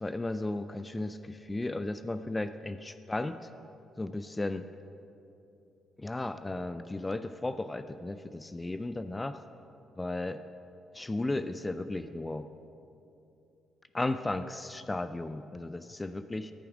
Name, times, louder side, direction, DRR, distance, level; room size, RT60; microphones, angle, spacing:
voice 1, 0.0-3.5 4.0-4.7 6.0-9.4 10.0-10.4 10.9-12.5 13.9-16.5, left 2 dB, 20° left, 11 dB, 0.3 m, -35 dB
13.5 x 7.0 x 4.9 m, 2.8 s
cardioid pair, 90°, 0 cm